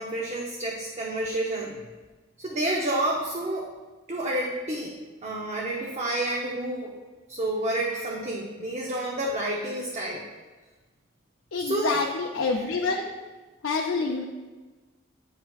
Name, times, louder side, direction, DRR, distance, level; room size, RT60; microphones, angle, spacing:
voice 1, 0.0-1.8 2.4-3.7 4.1-4.9 5.2-6.9 7.3-10.2 11.6-12.1 12.4-12.9, right 1 dB, 35° right, -3 dB, 0.7 m, -29 dB
voice 2, 11.5-13.1 13.6-14.2, left 4 dB, 80° left, 1 dB, 0.5 m, -27 dB
8.7 x 5.6 x 2.4 m, 1.3 s
head